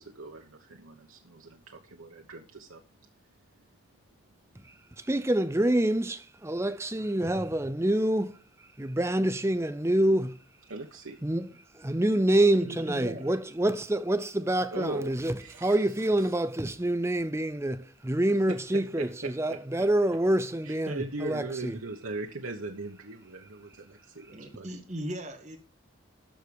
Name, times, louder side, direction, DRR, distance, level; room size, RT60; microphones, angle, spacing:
voice 1, 0.0-2.8 10.7-11.2 14.7-15.1 15.4-15.8 18.5-19.9 20.7-24.8, right 2 dB, 85° right, 1.1 m, -39 dB
voice 2, 5.1-8.4 8.8-10.4 11.2-11.5 11.8-21.8, right 1 dB, 15° right, 0.5 m, -26 dB
voice 3, 12.6-13.3 24.3-25.6, right 1 dB, 35° right, 2.0 m, -38 dB
13.5 x 4.8 x 6.9 m
head